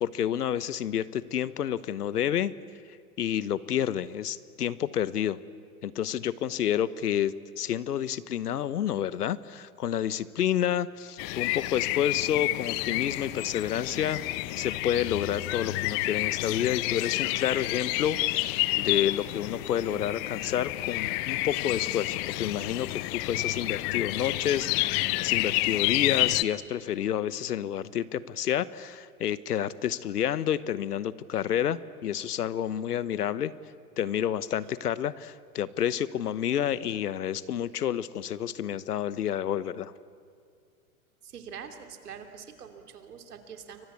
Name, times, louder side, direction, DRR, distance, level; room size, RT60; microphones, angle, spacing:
voice 1, 0.0-2.5 3.2-5.4 5.8-14.2 14.6-33.5 34.0-39.9, left 10 dB, 90° left, 17 dB, 1.1 m, -29 dB
sound 1, 11.2-26.4, left 18 dB, 40° left, 0.9 m, -29 dB
voice 2, 41.2-43.9, right 7 dB, 85° right, 6 dB, 3.3 m, -44 dB
29.5 x 23.5 x 8.4 m, 2.2 s
hypercardioid pair, 125°, 45 cm